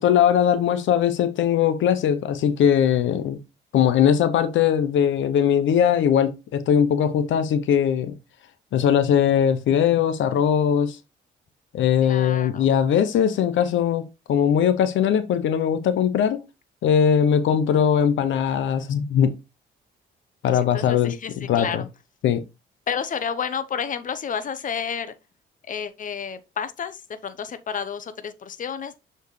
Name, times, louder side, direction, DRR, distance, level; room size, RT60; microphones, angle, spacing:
voice 1, 0.0-3.4 3.7-8.1 8.7-11.0 11.7-14.0 14.3-16.4 16.8-19.3 20.4-21.8 22.2-22.4, left 8 dB, 75° left, 0.8 m, -20 dB
voice 2, 12.0-12.7 20.4-21.9 22.9-25.1 25.7-29.0, left 7 dB, 40° left, 0.8 m, -31 dB
6.8 x 4.5 x 3.2 m
cardioid pair, 90°, 20 cm